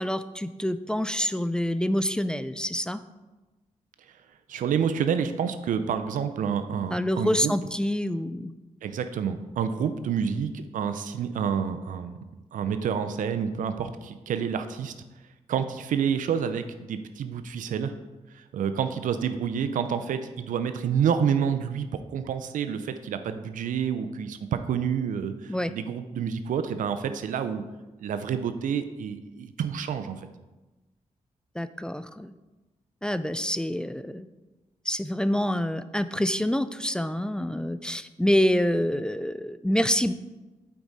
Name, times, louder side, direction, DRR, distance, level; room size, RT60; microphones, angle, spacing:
voice 1, 0.0-3.0 6.9-8.5 25.5-25.7 31.6-32.3 33.0-34.3 34.9-40.1, equal, 5° left, 12 dB, 0.4 m, -26 dB
voice 2, 4.5-7.5 8.8-12.2 12.5-14.9 15.5-17.9 18.3-27.6 28.0-30.2, right 7 dB, 85° right, 9 dB, 0.5 m, -28 dB
8.7 x 4.7 x 4.1 m, 1.1 s
cardioid pair, 65°, 13 cm